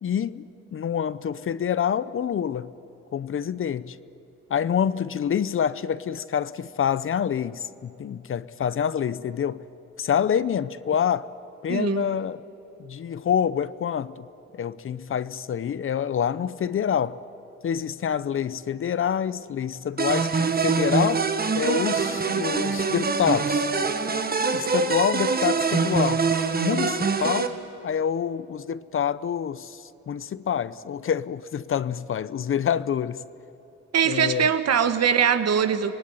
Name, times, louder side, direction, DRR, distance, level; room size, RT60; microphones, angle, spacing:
voice 1, 0.0-2.7 3.1-4.0 4.5-9.6 10.0-11.3 11.6-12.4 12.8-14.3 14.5-17.2 17.6-21.3 21.5-23.6 24.5-26.2 26.5-27.6 27.8-33.2 34.1-34.5, left 8 dB, 45° left, 0.7 m, -27 dB
voice 2, 11.7-12.1 33.9-36.0, right 8 dB, 55° right, 1.6 m, -22 dB
sound 1, 20.0-27.5, right 4 dB, 30° right, 1.7 m, -24 dB
25.5 x 18.5 x 9.7 m
cardioid pair, 90°, 30 cm